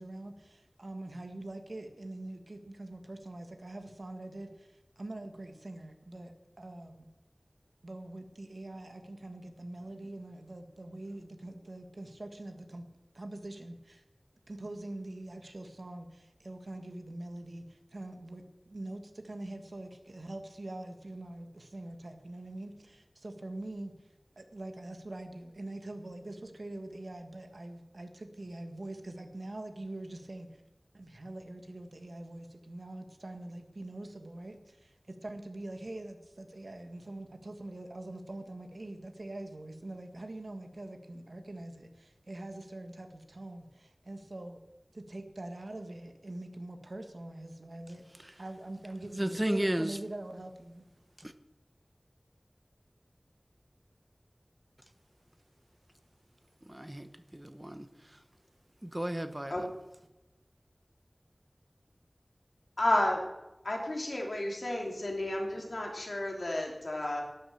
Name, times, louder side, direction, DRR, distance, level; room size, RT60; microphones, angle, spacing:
voice 1, 0.0-4.7 5.0-7.1 7.8-12.8 13.1-14.0 14.5-23.9 24.4-30.5 30.9-44.6 44.9-48.0 48.4-50.9, right 1 dB, 80° right, 1.6 m, -44 dB
voice 2, 49.1-50.0 51.2-51.3 56.6-58.2 58.8-59.7, right 1 dB, 25° right, 0.9 m, -34 dB
voice 3, 62.8-63.2 63.6-67.2, left 1 dB, 85° left, 3.0 m, -31 dB
12.0 x 9.4 x 7.0 m
wide cardioid pair, 40°, 0 cm